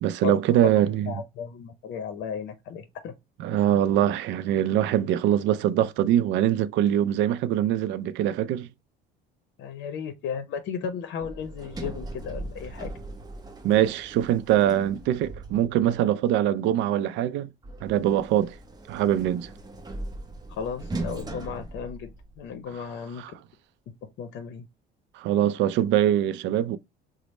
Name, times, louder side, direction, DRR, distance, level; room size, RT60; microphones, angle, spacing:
voice 1, 0.0-1.1 3.4-8.7 13.6-17.5 17.8-18.6 18.9-19.5 25.1-26.8, right 11 dB, 70° right, 0.4 m, -23 dB
voice 2, 0.7-3.1 9.6-12.9 20.5-22.1 22.4-23.2 24.2-24.7, left 7 dB, 65° left, 0.7 m, -35 dB
Sliding door, 11.2-16.0 17.6-22.6, right 2 dB, 20° right, 0.7 m, -39 dB
3.1 x 2.0 x 4.1 m
cardioid pair, 105°, 20 cm